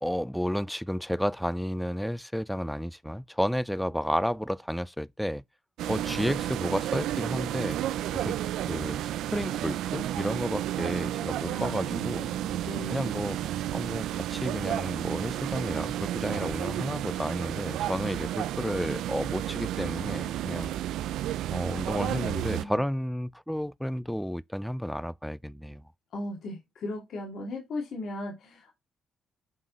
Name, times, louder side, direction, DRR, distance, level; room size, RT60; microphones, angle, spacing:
voice 1, 0.0-5.4 5.9-7.8 8.1-8.4 8.7-12.3 12.9-13.4 13.7-20.7 21.5-25.8, equal, ahead, 0.4 m, -32 dB
sound 1, 5.8-22.7, right 12 dB, 85° right, 0.4 m, -32 dB
voice 2, 11.4-13.2 21.9-22.8 26.1-28.8, left 1 dB, 65° left, 2.2 m, -38 dB
7.5 x 3.7 x 4.0 m
cardioid pair, 90°, 0 cm